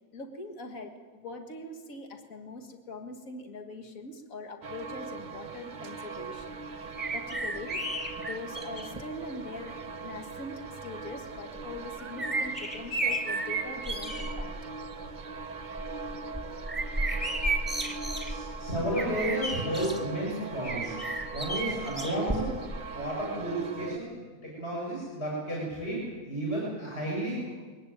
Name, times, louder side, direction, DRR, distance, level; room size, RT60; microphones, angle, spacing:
voice 1, 0.1-6.5 6.8-7.8 8.2-9.7 10.0-14.5, left 2 dB, 65° left, 4 dB, 2.3 m, -42 dB
sound 1, 4.6-24.0, right 4 dB, 35° right, 0.9 m, -41 dB
sound 2, 7.0-9.0 9.9-10.0 11.6-14.5 14.8-15.2 15.6-20.0 20.6-22.8 23.0-23.1, right 2 dB, 5° right, 2.3 m, -33 dB
voice 2, 18.2-21.0 21.3-22.5 22.9-24.1 24.4-26.0 26.2-27.5, right 1 dB, 40° left, -5 dB, 7.5 m, -32 dB
23.5 x 18.0 x 9.4 m, 1.5 s
omnidirectional pair, 1.5 m